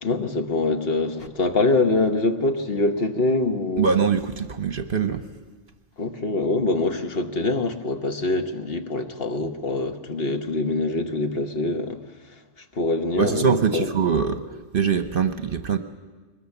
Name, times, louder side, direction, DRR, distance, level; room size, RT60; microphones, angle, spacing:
voice 1, 0.0-3.9 6.0-12.0 12.7-13.5 13.7-13.9, left 2 dB, 50° left, 6 dB, 1.3 m, -24 dB
voice 2, 3.8-5.2 13.2-14.4 14.7-15.8, right 6 dB, 50° right, 9 dB, 0.9 m, -22 dB
22.0 x 20.5 x 7.1 m, 1.3 s
omnidirectional pair, 1.3 m